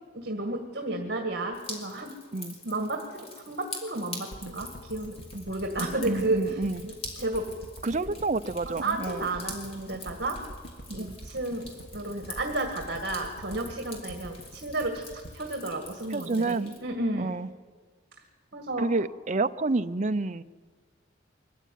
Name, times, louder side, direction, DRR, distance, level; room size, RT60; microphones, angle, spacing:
voice 1, 0.1-2.1 2.6-6.7 7.2-7.5 8.7-10.4 10.9-17.4 18.5-18.9, right 2 dB, 55° right, 3 dB, 2.0 m, -32 dB
Drip, 1.5-16.8, left 2 dB, 30° left, 3.8 m, -45 dB
sound 1, 4.3-16.6 17.0-17.1, equal, 60° left, 2.4 m, -45 dB
voice 2, 6.1-6.8 7.8-9.2 10.9-11.1 16.1-16.8 17.2-17.5 18.8-20.4, right 3 dB, 40° right, 10 dB, 0.6 m, -29 dB
23.5 x 14.5 x 9.4 m, 1.5 s
head